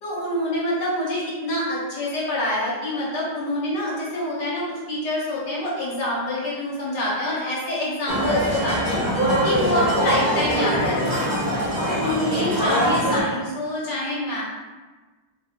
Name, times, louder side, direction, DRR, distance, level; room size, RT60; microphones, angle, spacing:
voice 1, 0.0-9.0 9.4-11.1 11.8-14.4, left 1 dB, 70° left, -7 dB, 1.5 m, -26 dB
sound 1, 8.1-13.2, equal, 45° right, 0.5 m, -23 dB
3.6 x 2.6 x 2.8 m, 1.3 s
omnidirectional pair, 2.0 m